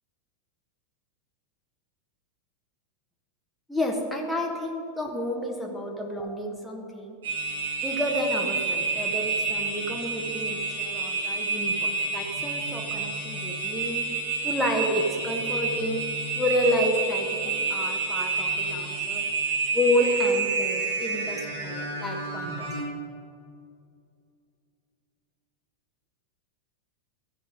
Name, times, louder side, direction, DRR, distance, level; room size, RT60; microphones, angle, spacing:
voice 1, 3.7-7.2 7.8-14.1 14.4-16.0 16.3-19.2 19.7-22.7, equal, ahead, -1 dB, 1.3 m, -29 dB
sound 1, 7.2-22.8, right 4 dB, 65° right, 2.8 m, -29 dB
14.5 x 5.8 x 5.1 m, 2.4 s
figure-of-eight pair, 90°, 0 cm